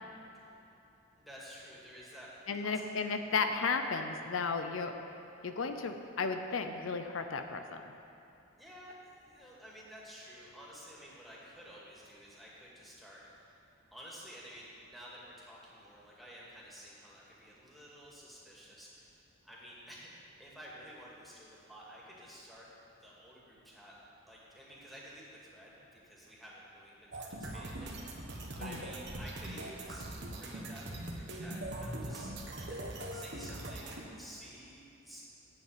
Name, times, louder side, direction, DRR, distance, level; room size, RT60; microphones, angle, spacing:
voice 1, 1.2-2.8 8.6-13.5 13.9-22.7 23.0-24.0 24.3-28.2 28.5-35.2, equal, ahead, -6 dB, 2.3 m, -52 dB
voice 2, 2.5-4.9 5.4-7.8 28.6-28.8, left 4 dB, 80° left, 7 dB, 0.6 m, -34 dB
sound 1, 27.1-34.0, right 1 dB, 55° right, 1.2 m, -41 dB
8.2 x 8.0 x 8.9 m, 2.9 s
head